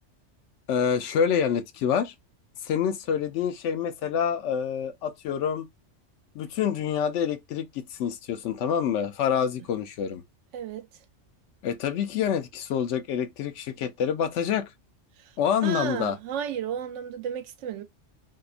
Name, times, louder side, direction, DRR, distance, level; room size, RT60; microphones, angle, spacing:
voice 1, 0.7-2.1 2.6-5.7 6.3-10.2 11.6-14.7 15.4-16.2, left 8 dB, 75° left, 0.9 m, -27 dB
voice 2, 10.5-10.9 15.2-15.3 15.6-17.8, right 8 dB, 80° right, 0.9 m, -33 dB
2.8 x 2.1 x 2.4 m
omnidirectional pair, 1.2 m